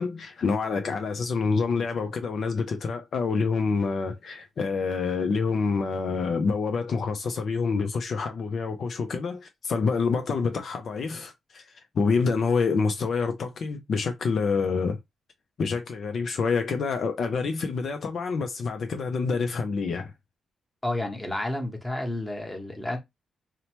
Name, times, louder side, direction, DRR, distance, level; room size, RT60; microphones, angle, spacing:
voice 1, 0.0-11.6 11.9-15.0 15.6-20.1, left 4 dB, 60° left, 0.4 m, -27 dB
voice 2, 20.8-23.0, left 1 dB, 10° left, 1.0 m, -30 dB
2.9 x 2.1 x 2.9 m
cardioid pair, 80°, 0 cm